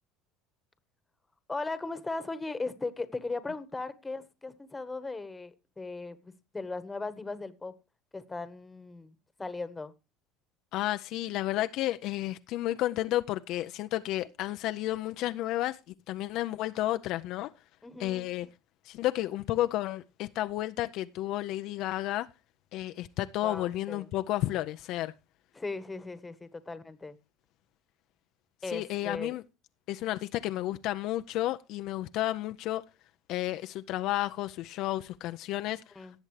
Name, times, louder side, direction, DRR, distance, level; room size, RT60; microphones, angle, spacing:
voice 1, 1.5-7.8 8.1-9.9 17.8-18.3 23.4-24.1 25.5-27.2 28.6-29.3 35.9-36.2, left 3 dB, 15° left, 1.3 m, -38 dB
voice 2, 10.7-15.8 16.1-17.5 18.0-18.5 18.8-22.3 22.7-25.1 28.7-29.4 29.9-32.8 33.3-36.2, left 14 dB, 65° left, 0.5 m, -32 dB
17.5 x 7.1 x 3.2 m
supercardioid pair, 100°, 0 cm